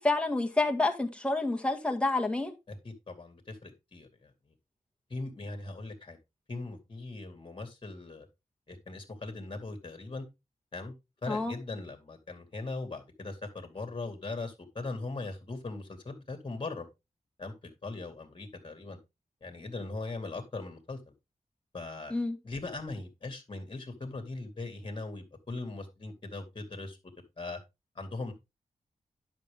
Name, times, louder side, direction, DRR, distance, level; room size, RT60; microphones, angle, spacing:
voice 1, 0.0-2.5 11.3-11.5 22.1-22.4, left 2 dB, 10° left, 1.7 m, -28 dB
voice 2, 2.7-4.3 5.1-6.2 6.5-8.3 8.7-10.2 10.7-10.9 11.2-16.9 17.4-19.0 19.4-21.0 21.7-22.1 22.4-27.0 27.4-27.6 28.0-28.3, left 3 dB, 40° left, 2.3 m, -40 dB
10.5 x 5.9 x 3.6 m
wide cardioid pair, 110°, 13 cm